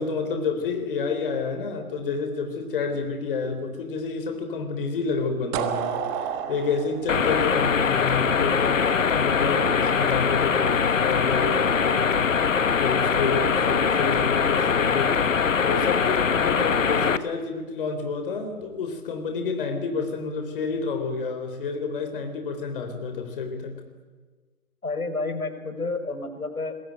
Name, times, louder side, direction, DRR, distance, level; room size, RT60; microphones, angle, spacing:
voice 1, 0.0-12.4 12.8-23.8, left 4 dB, 40° left, 6 dB, 3.6 m, -29 dB
sound 1, 5.5-8.4, right 8 dB, 15° right, 1.3 m, -30 dB
sound 2, 7.1-17.2, left 6 dB, 60° left, 1.4 m, -22 dB
voice 2, 24.8-26.8, left 3 dB, 80° left, 9 dB, 4.6 m, -30 dB
25.5 x 21.5 x 9.1 m, 1.4 s
figure-of-eight pair, 145°, 43 cm